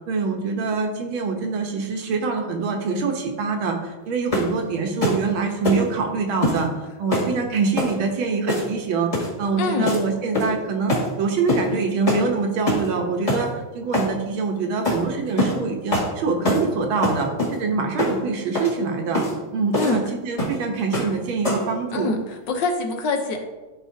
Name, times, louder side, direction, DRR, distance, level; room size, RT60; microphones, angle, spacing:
voice 1, 0.0-6.7 7.0-13.5 13.7-19.2 19.5-22.1, right 4 dB, 75° right, 3 dB, 1.8 m, -25 dB
sound 1, 4.3-4.6 5.0-5.2 5.6-5.9 6.4-6.6 7.1-7.3 7.8-7.9 8.5-8.8 9.1-9.3 9.8-10.0 10.3-10.6 10.9-11.1 11.5-11.7 12.1-12.3 12.7-12.9 13.3-13.4 13.9-14.1 14.8-15.0 15.4-15.6 15.9-16.1 16.4-16.7 17.0-17.6 18.0-18.2 18.5-18.7 19.1-19.3 19.7-20.0 20.4-20.6 20.9-21.1 21.4-21.7, left 1 dB, 15° left, 1.8 m, -23 dB
voice 2, 9.6-9.9 19.7-20.0 21.9-23.4, left 3 dB, 65° left, 4 dB, 1.5 m, -24 dB
12.5 x 4.3 x 2.8 m, 1.2 s
omnidirectional pair, 2.3 m